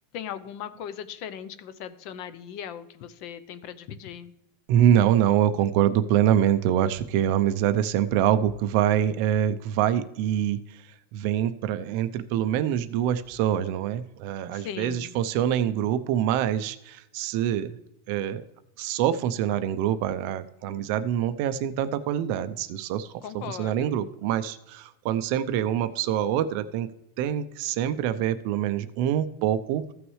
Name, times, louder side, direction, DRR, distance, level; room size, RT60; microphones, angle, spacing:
voice 1, 0.1-4.3 14.5-15.1 23.2-24.0, left 9 dB, 40° left, 14 dB, 0.6 m, -38 dB
voice 2, 4.7-10.8 11.1-17.8 18.1-18.4 18.8-26.9 27.2-29.8, right 10 dB, 45° right, 12 dB, 0.5 m, -25 dB
14.5 x 6.2 x 3.2 m, 0.86 s
supercardioid pair, 165°, 0 cm